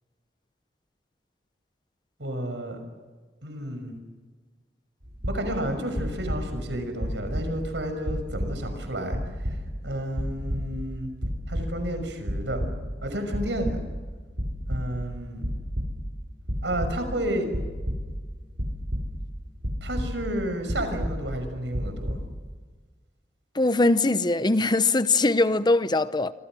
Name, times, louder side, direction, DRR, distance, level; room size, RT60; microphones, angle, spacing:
voice 1, 2.2-2.8 3.4-4.0 5.3-11.1 11.5-12.6 13.0-13.8 14.7-15.5 16.6-17.5 19.8-22.2, right 1 dB, 90° right, 6.1 m, -31 dB
sound 1, 5.0-5.7 5.9-6.7 7.0-7.8 8.0-8.8 9.1-9.9 10.2-10.9 11.2-12.0 12.3-12.9 13.2-14.1 14.4-15.1 15.4-16.2 16.5-17.1 17.5-19.3 19.6-20.4 20.7-21.4 21.7-22.1, equal, 60° right, 7.9 m, -30 dB
voice 2, 23.6-26.3, left 2 dB, 25° left, 0.8 m, -21 dB
27.5 x 26.0 x 6.3 m
head